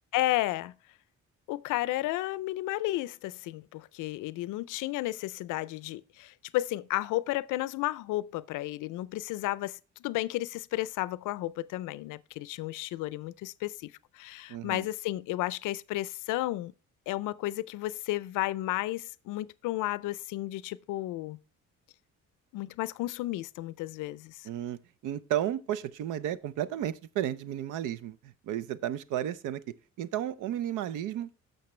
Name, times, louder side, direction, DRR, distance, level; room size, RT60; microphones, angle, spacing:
voice 1, 0.1-0.7 1.5-16.7 17.1-21.4 22.5-24.5, left 17 dB, 90° left, 0.5 m, -33 dB
voice 2, 14.5-14.8 24.4-29.6 30.0-31.3, right 11 dB, 85° right, 0.6 m, -33 dB
10.5 x 6.6 x 3.1 m
cardioid pair, 90°, 30 cm